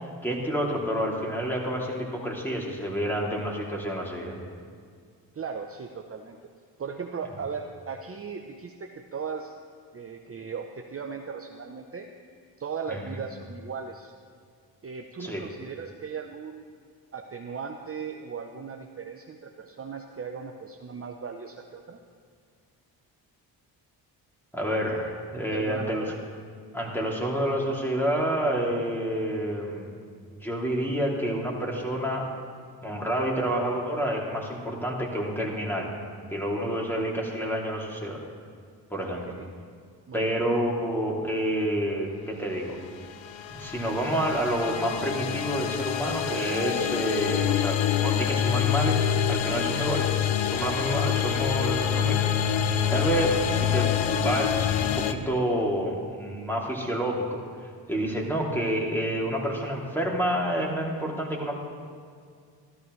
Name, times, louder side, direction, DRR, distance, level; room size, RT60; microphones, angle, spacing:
voice 1, 0.0-4.4 12.9-13.2 15.2-15.4 24.5-26.0 26.7-29.9 30.3-32.3 32.8-35.9 36.3-38.2 38.9-39.2 40.1-42.8 43.5-49.0 49.3-50.1 50.4-57.4 57.9-61.5, equal, 5° left, -3 dB, 2.7 m, -28 dB
voice 2, 5.3-6.4 6.8-9.5 9.9-12.1 12.6-14.1 14.8-16.8 17.1-22.0 25.5-26.2 39.1-39.5 40.1-40.4, right 5 dB, 30° right, 3 dB, 0.7 m, -37 dB
sound 1, 42.9-55.1, left 9 dB, 85° left, 0.7 m, -26 dB
13.5 x 12.5 x 3.2 m, 2.1 s
supercardioid pair, 65°, 44 cm